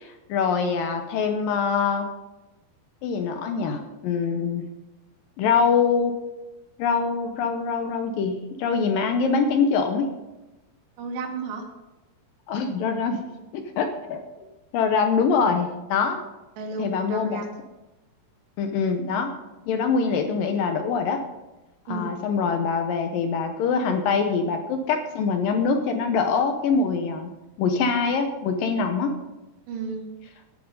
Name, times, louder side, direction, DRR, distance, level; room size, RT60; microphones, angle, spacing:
voice 1, 0.0-2.1 3.0-4.6 5.4-6.1 6.8-10.1 12.5-13.3 13.5-14.2 14.7-16.2 16.8-17.4 18.6-19.3 19.7-21.2 21.9-27.3 27.6-29.1, left 5 dB, 75° left, 6 dB, 2.1 m, -24 dB
voice 2, 11.0-11.7 16.6-17.5 21.9-22.2 29.7-30.0, right 4 dB, 75° right, 2 dB, 4.0 m, -32 dB
12.5 x 10.5 x 5.3 m, 1.1 s
omnidirectional pair, 5.0 m